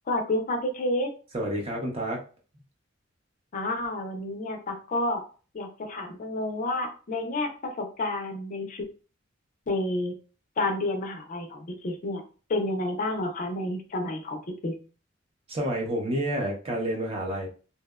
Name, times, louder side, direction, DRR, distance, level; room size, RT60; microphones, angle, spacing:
voice 1, 0.1-1.1 3.5-5.2 5.5-8.9 9.7-10.1 10.6-12.2 12.5-14.7, left 2 dB, 40° left, 4 dB, 0.4 m, -30 dB
voice 2, 1.3-2.3 15.5-17.5, right 1 dB, 30° right, -1 dB, 0.6 m, -29 dB
2.7 x 2.0 x 2.3 m, 0.37 s
head